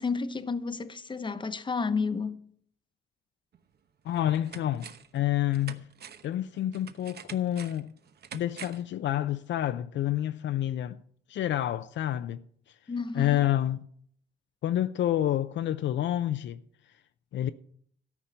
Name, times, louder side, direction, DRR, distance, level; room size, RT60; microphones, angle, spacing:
voice 1, 0.0-2.4 12.9-13.4, left 4 dB, 25° left, 0.9 m, -31 dB
sound 1, 3.5-3.6 4.1-5.2 5.5-8.9 9.3-9.4, right 7 dB, 55° right, 1.0 m, -46 dB
voice 2, 4.0-5.8 6.2-7.9 8.3-11.0 11.3-12.4 13.1-13.8 14.6-16.6 17.3-17.5, left 12 dB, 65° left, 0.5 m, -28 dB
13.0 x 5.5 x 8.9 m
cardioid pair, 90°, 20 cm